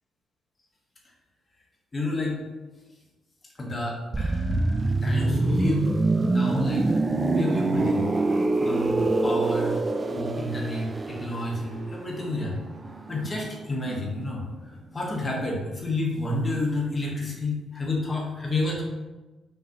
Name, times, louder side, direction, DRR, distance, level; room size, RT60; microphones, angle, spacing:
voice 1, 1.9-2.4 3.6-5.9 6.3-6.9 7.3-7.9 8.6-9.8 10.1-12.6 13.1-14.4 14.9-18.8, left 2 dB, 25° left, -2 dB, 1.1 m, -30 dB
sound 1, 4.1-13.8 14.1-14.3, right 2 dB, 25° right, 0.3 m, -25 dB
5.7 x 2.7 x 2.7 m, 1.2 s
cardioid pair, 90°, 0 cm